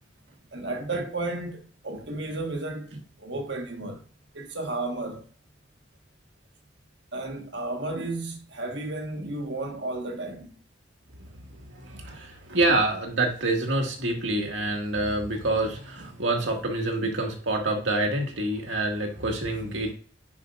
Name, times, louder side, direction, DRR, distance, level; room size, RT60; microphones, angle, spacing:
voice 1, 0.5-4.0 4.3-5.3 7.1-10.6 12.0-12.2 12.5-12.8 16.0-16.5 17.0-17.1, right 2 dB, 65° right, 1.5 m, -33 dB
voice 2, 11.5-19.9, right 2 dB, 90° right, 2.1 m, -27 dB
9.8 x 5.5 x 2.5 m
head